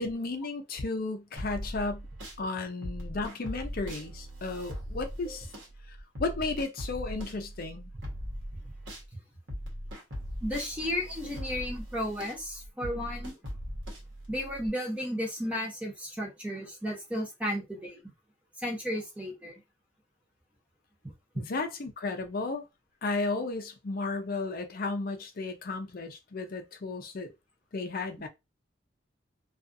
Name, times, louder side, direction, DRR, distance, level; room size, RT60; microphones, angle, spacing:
voice 1, 0.0-2.0 2.4-5.5 6.2-7.9 21.4-22.7 23.0-27.3 27.7-28.3, left 3 dB, 50° left, 0.5 m, -34 dB
sound 1, 1.4-2.4 2.8-9.1 9.5-14.7, equal, 85° right, 1.0 m, -40 dB
voice 2, 10.4-13.4 14.3-18.0 18.6-19.6 21.3-21.4, equal, 10° right, 0.9 m, -34 dB
2.4 x 2.4 x 2.6 m
head